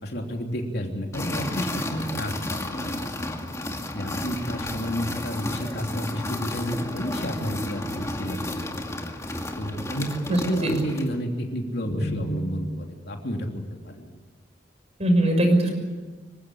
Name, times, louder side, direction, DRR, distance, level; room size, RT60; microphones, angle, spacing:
voice 1, 0.0-3.1 3.4-3.5 3.9-8.9 9.6-14.1, equal, 65° left, 2 dB, 3.2 m, -31 dB
sound 1, 1.1-11.2, left 1 dB, 15° left, 2.3 m, -32 dB
voice 2, 10.3-10.7 11.8-12.3 15.0-15.7, right 1 dB, 40° right, 4 dB, 6.2 m, -22 dB
25.5 x 16.5 x 10.0 m, 1.3 s
head